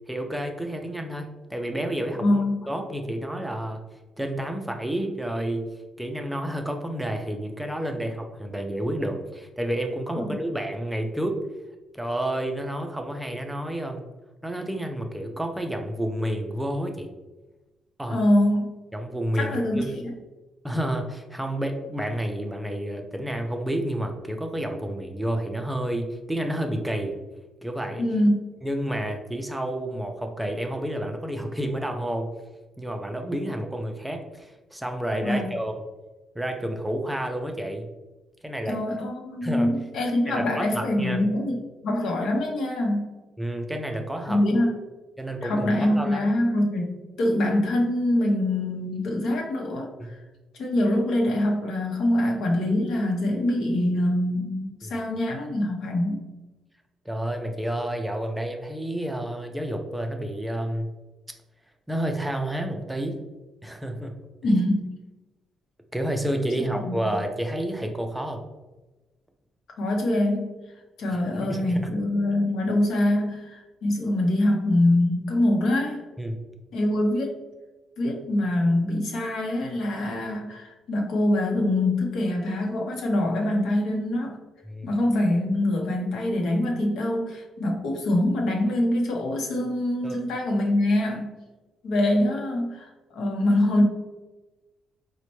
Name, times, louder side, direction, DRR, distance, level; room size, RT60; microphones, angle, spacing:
voice 1, 0.1-2.4 2.7-3.8 4.2-5.6 6.0-11.4 11.9-14.0 14.4-17.1 18.0-18.2 18.9-20.0 20.6-27.2 27.6-28.0 28.6-32.3 32.8-35.8 36.4-37.9 38.4-38.8 39.4-39.7 40.3-41.2 43.4-44.4 45.2-46.3 50.0-50.1 54.8-55.0 57.1-60.9 61.9-63.2 63.6-64.2 64.4-64.5 65.9-68.4 71.1-71.8 76.2-76.4 84.7-84.9 90.0-90.2, right 1 dB, 5° right, 4 dB, 0.4 m, -30 dB
voice 2, 2.2-2.5 10.2-10.3 18.1-18.7 19.3-20.0 28.0-28.4 35.2-35.5 38.7-41.6 41.8-43.2 44.3-44.8 45.4-50.2 50.6-56.2 64.4-64.9 66.8-67.1 69.8-70.5 71.0-76.0 76.7-77.4 78.0-84.4 84.8-91.3 91.8-93.8, left 1 dB, 75° left, 0 dB, 0.7 m, -24 dB
4.1 x 2.1 x 3.0 m, 1.1 s
cardioid pair, 90°, 0 cm